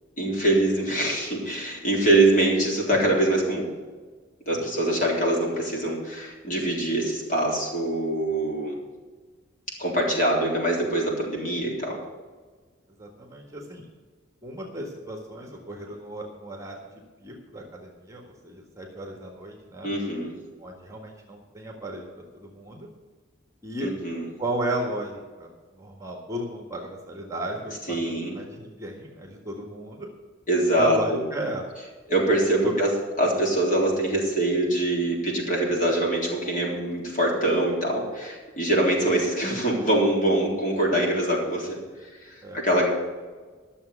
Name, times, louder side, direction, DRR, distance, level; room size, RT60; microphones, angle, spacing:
voice 1, 0.2-3.7 4.5-8.8 9.8-12.0 19.8-20.4 23.8-24.3 27.9-28.3 30.5-31.2 32.1-41.8 42.2-42.8, right 1 dB, 40° left, -3 dB, 3.7 m, -24 dB
voice 2, 4.5-5.1 13.0-13.8 14.4-16.8 17.2-19.9 20.6-22.1 22.3-22.9 23.6-23.9 24.4-30.1 30.7-31.6 32.6-32.7 42.4-42.6, right 1 dB, 15° right, 1 dB, 1.7 m, -34 dB
12.5 x 7.0 x 8.3 m, 1.4 s
head